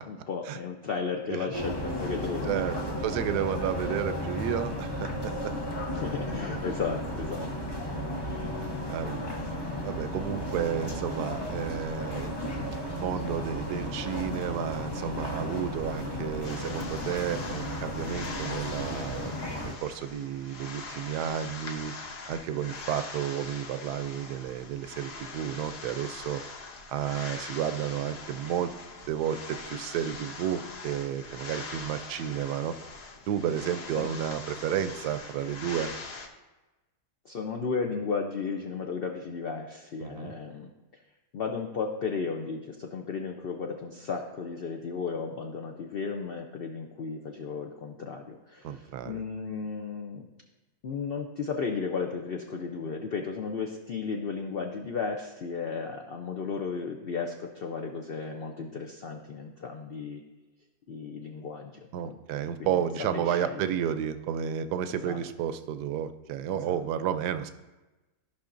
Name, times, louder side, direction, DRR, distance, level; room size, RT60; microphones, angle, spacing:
voice 1, 0.1-2.6 5.9-7.5 8.1-8.5 34.0-34.1 37.2-40.7 41.3-50.3 50.8-60.2 60.9-62.2 62.6-62.9 63.1-63.7 65.0-65.2 66.5-66.8, left 5 dB, 75° left, 3 dB, 0.5 m, -34 dB
sound 1, 1.5-19.7, left 1 dB, 25° left, 0.5 m, -34 dB
voice 2, 2.5-5.5 8.9-9.3 9.8-21.9 22.3-26.4 26.9-28.7 29.1-32.7 33.3-35.9 40.0-40.3 48.6-49.2 61.9-67.5, right 9 dB, 75° right, 10 dB, 1.1 m, -32 dB
sound 2, 16.4-36.3, left 4 dB, 50° left, 0.9 m, -42 dB
14.0 x 5.6 x 2.5 m, 1.1 s
omnidirectional pair, 1.8 m